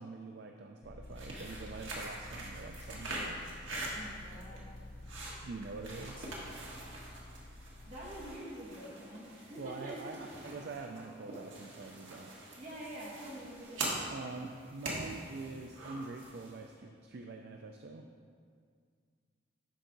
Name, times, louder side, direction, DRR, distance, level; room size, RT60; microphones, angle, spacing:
voice 1, 0.0-3.4 5.4-6.2 9.6-12.3 14.1-18.1, right 3 dB, 55° right, 4 dB, 0.4 m, -45 dB
sound 1, 0.8-8.4, left 1 dB, 40° left, 0.5 m, -50 dB
sound 2, 1.0-16.6, right 2 dB, 75° right, 1.6 m, -44 dB
voice 2, 3.9-4.6 7.9-10.0 12.6-14.0, right 1 dB, 35° right, -6 dB, 1.9 m, -46 dB
11.0 x 4.7 x 3.9 m, 2.1 s
head